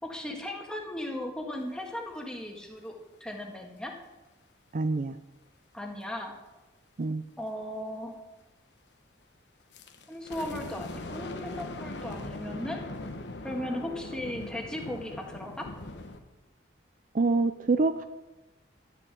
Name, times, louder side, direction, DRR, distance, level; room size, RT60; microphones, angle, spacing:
voice 1, 0.0-2.9 3.2-3.9 5.7-6.3 7.4-8.2 10.1-12.8 13.4-15.7, left 1 dB, 5° left, 0 dB, 1.7 m, -37 dB
voice 2, 4.7-5.2 7.0-7.2 17.1-18.0, right 3 dB, 40° right, 10 dB, 0.4 m, -26 dB
sound 1, 9.7-16.2, left 2 dB, 65° left, 1.1 m, -40 dB
12.5 x 7.1 x 8.4 m, 1.1 s
head